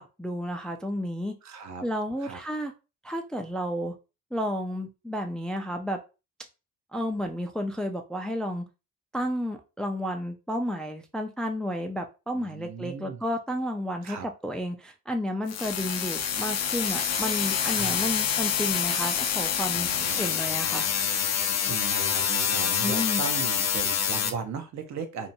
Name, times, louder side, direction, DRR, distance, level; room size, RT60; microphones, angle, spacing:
voice 1, 0.0-1.3 1.8-2.7 3.0-3.9 4.3-6.0 6.9-8.6 9.1-20.9 22.8-23.2, equal, 5° left, 4 dB, 0.3 m, -31 dB
voice 2, 1.4-1.8 2.2-2.4 12.3-13.2 14.0-14.3 17.7-18.1 19.7-20.2 21.6-25.3, right 6 dB, 65° right, 6 dB, 0.7 m, -37 dB
sound 1, 15.5-24.3, left 8 dB, 60° left, 0.5 m, -27 dB
2.7 x 2.1 x 2.6 m, 0.29 s
cardioid pair, 90°, 30 cm